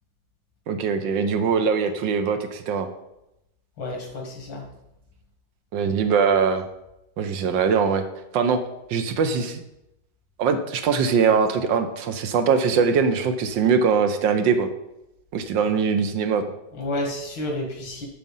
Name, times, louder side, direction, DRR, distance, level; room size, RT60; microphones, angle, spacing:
voice 1, 0.7-2.9 5.7-6.6 7.2-8.0 8.3-8.6 8.9-9.6 10.4-14.7 15.3-16.4, right 6 dB, 75° right, 8 dB, 1.5 m, -22 dB
voice 2, 3.8-4.7 16.7-18.1, left 1 dB, 80° left, 2 dB, 2.6 m, -30 dB
7.3 x 6.7 x 5.4 m, 0.87 s
omnidirectional pair, 2.0 m